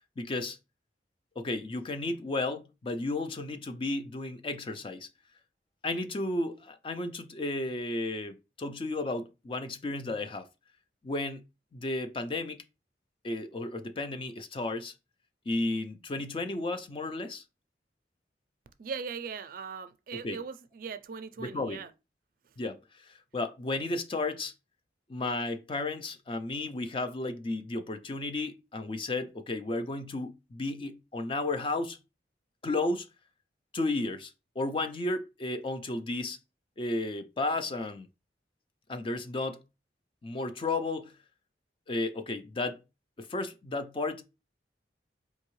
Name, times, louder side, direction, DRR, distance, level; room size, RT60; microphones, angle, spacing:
voice 1, 0.2-0.6 1.4-5.1 5.8-10.5 11.0-11.4 11.7-12.6 13.2-14.9 15.5-17.4 20.1-20.4 21.4-21.9 22.6-24.5 25.1-32.0 32.6-33.1 33.7-36.4 36.8-38.1 38.9-39.6 40.2-41.1 41.9-42.8 43.2-44.2, left 2 dB, 30° left, 0.4 m, -33 dB
voice 2, 18.8-21.9, right 5 dB, 50° right, 0.4 m, -39 dB
4.5 x 2.7 x 3.0 m
head